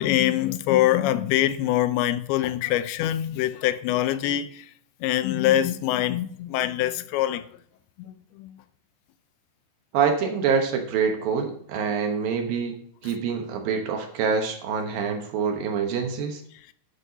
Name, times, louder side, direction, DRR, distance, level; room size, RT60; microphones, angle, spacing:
voice 1, 0.0-4.7 5.0-7.5 8.0-8.5, left 13 dB, 85° left, 2.5 m, -24 dB
voice 2, 9.9-16.4, right 6 dB, 70° right, 2.7 m, -26 dB
11.0 x 5.6 x 4.0 m
omnidirectional pair, 4.5 m